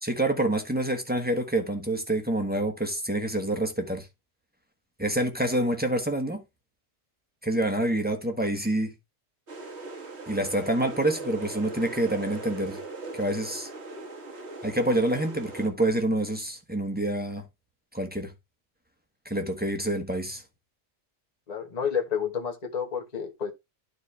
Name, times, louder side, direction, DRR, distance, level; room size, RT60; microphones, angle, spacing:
voice 1, 0.0-4.1 5.0-6.4 7.4-8.9 10.3-12.8 13.1-13.7 14.6-17.5 17.9-18.3 19.2-20.4, right 1 dB, 10° right, 1.2 m, -27 dB
sound 1, 9.5-15.7, right 3 dB, 60° right, 1.9 m, -39 dB
voice 2, 21.5-23.5, left 7 dB, 35° left, 1.3 m, -30 dB
12.0 x 4.3 x 3.3 m
omnidirectional pair, 1.3 m